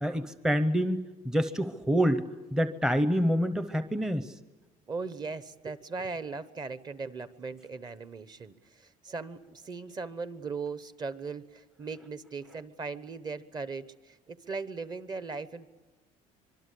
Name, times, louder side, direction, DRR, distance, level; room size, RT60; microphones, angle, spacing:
voice 1, 0.0-2.2 2.5-4.3, equal, 5° right, 11 dB, 0.8 m, -27 dB
voice 2, 4.9-15.7, right 4 dB, 25° right, 14 dB, 1.1 m, -38 dB
25.0 x 23.5 x 8.5 m, 1.2 s
cardioid pair, 145°, 15 cm